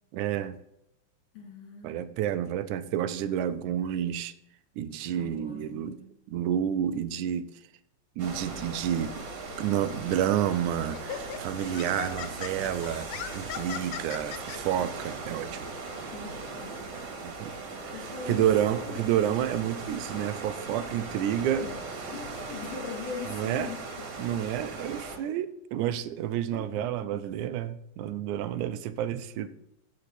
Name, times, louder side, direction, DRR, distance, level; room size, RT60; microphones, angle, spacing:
voice 1, 0.1-0.6 1.8-4.3 4.8-6.0 6.3-7.5 8.2-9.1 9.6-15.7 17.2-17.5 17.8-17.9 18.3-21.7 23.3-23.7 24.2-29.5, right 10 dB, 85° right, 12 dB, 2.1 m, -29 dB
voice 2, 1.3-2.1 5.0-6.0 16.0-16.8 17.9-19.1 21.6-23.8 26.5-27.2 29.4-29.5, left 6 dB, 45° left, -3 dB, 3.9 m, -41 dB
sound 1, 8.2-25.2, right 3 dB, 60° right, 2.6 m, -39 dB
Laughter, 10.1-10.3 10.9-14.6, left 9 dB, 90° left, 2.2 m, -38 dB
14.5 x 5.4 x 4.2 m, 0.83 s
omnidirectional pair, 3.5 m